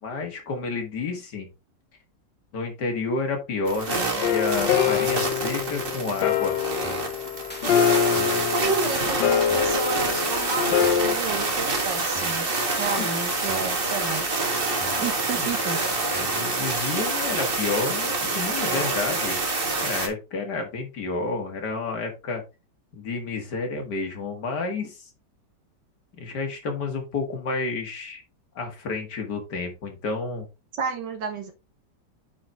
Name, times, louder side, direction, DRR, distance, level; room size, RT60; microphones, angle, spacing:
voice 1, 0.0-1.5 2.5-6.5 13.0-13.1 14.9-15.1 15.3-15.5 16.2-19.4 19.8-22.4 22.9-25.1 26.2-28.2 28.6-30.5, left 3 dB, 65° left, 3 dB, 2.4 m, -30 dB
sound 1, 3.7-20.1, right 3 dB, 35° right, 1.5 m, -27 dB
sound 2, 4.2-11.2, left 8 dB, 80° left, 1.4 m, -24 dB
sound 3, 6.8-7.1 7.5-7.7 8.2-8.5 8.8-9.0 9.5-9.8 10.2-11.1 11.5-11.6 12.1-12.5 12.8-13.0 13.5-13.8 14.1-14.3 14.8-15.1 15.5-16.5 16.8-17.0, right 1 dB, 5° left, 1.2 m, -41 dB
voice 2, 8.5-12.5 12.8-14.5 15.0-15.8 30.7-31.5, right 4 dB, 75° right, 6 dB, 1.9 m, -31 dB
8.6 x 4.4 x 3.5 m, 0.27 s
omnidirectional pair, 1.9 m